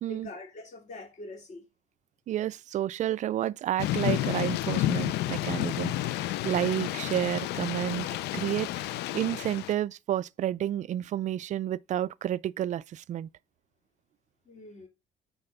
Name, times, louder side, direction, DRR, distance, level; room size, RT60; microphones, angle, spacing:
voice 1, 0.1-1.7 14.4-14.9, left 2 dB, 45° left, 2.9 m, -44 dB
voice 2, 2.3-8.1 8.3-13.3, right 11 dB, 45° right, 0.4 m, -30 dB
Thunder / Rain, 3.8-9.7, left 14 dB, 80° left, 0.4 m, -30 dB
8.9 x 4.2 x 5.4 m
cardioid pair, 110°, 17 cm